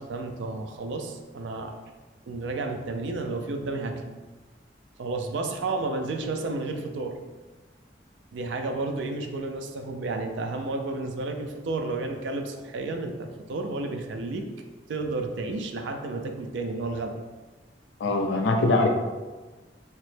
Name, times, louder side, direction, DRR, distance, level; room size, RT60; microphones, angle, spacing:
voice 1, 0.0-1.7 2.3-4.1 5.0-7.2 8.3-14.5 14.9-17.2, right 3 dB, 80° right, 5 dB, 0.3 m, -31 dB
voice 2, 18.0-18.9, left 2 dB, 75° left, 3 dB, 0.4 m, -22 dB
3.0 x 2.0 x 3.1 m, 1.3 s
head